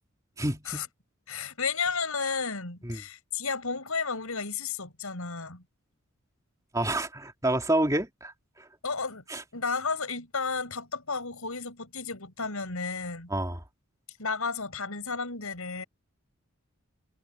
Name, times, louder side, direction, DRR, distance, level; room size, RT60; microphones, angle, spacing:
voice 1, 0.4-0.9 2.8-3.0 6.7-8.3 8.6-8.7 9.3-9.4 13.3-13.6, right 1 dB, 15° right, 3.2 m, -28 dB
voice 2, 1.3-5.6 8.8-9.2 9.5-13.3 14.2-15.8, left 5 dB, 90° left, 6.1 m, -32 dB
head